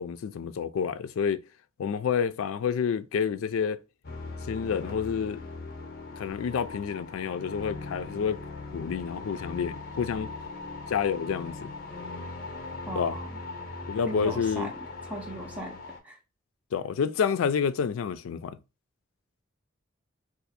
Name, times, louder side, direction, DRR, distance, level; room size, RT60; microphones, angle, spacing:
voice 1, 0.0-1.4 1.8-3.8 4.5-5.4 6.2-8.4 8.7-10.3 10.9-11.7 12.9-13.2 13.9-14.7 16.7-18.6, left 6 dB, 85° left, 0.3 m, -29 dB
sound 1, 4.0-16.0, left 3 dB, 45° left, 0.7 m, -40 dB
voice 2, 12.9-13.2 14.1-14.7 15.1-15.7 16.0-16.2, right 2 dB, 5° right, 0.5 m, -37 dB
2.6 x 2.4 x 4.0 m
head